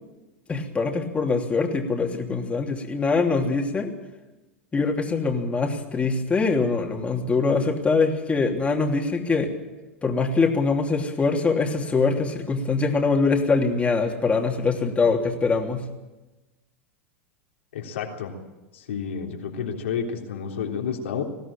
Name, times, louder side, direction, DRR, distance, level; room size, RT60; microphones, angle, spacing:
voice 1, 0.5-3.9 4.7-9.5 10.0-15.8, left 4 dB, 20° left, 1 dB, 3.1 m, -23 dB
voice 2, 17.7-18.3 18.7-21.2, left 7 dB, 75° left, 2 dB, 3.6 m, -30 dB
20.0 x 15.5 x 8.9 m, 1.1 s
hypercardioid pair, 95°, 7 cm